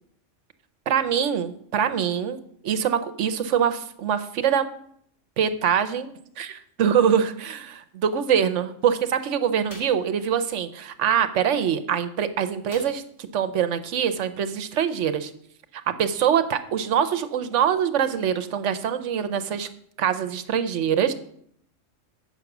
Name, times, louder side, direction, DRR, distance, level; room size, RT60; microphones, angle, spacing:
voice 1, 0.9-4.7 5.4-15.3 15.9-19.7 20.0-21.1, right 8 dB, 75° right, 12 dB, 1.0 m, -24 dB
sound 1, 9.7-10.1 12.7-13.3 13.6-13.7 14.1-14.3, left 1 dB, 70° left, 5.0 m, -44 dB
8.2 x 6.5 x 5.9 m, 0.67 s
omnidirectional pair, 1.3 m